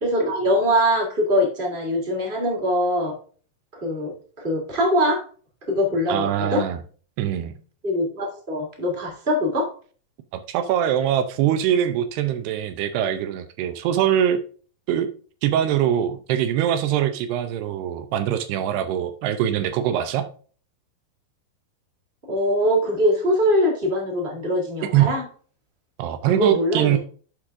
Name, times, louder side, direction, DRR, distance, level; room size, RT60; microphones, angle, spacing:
voice 1, 0.0-3.1 3.7-5.2 5.7-6.6 7.8-9.7 22.3-25.2 26.2-27.0, equal, 15° right, 2.3 m, -22 dB
voice 2, 6.1-6.8 7.2-7.6 10.3-14.4 14.9-15.1 15.4-20.3 24.8-25.2 26.0-27.0, right 10 dB, 80° right, 2.7 m, -23 dB
12.0 x 4.8 x 3.6 m
omnidirectional pair, 4.7 m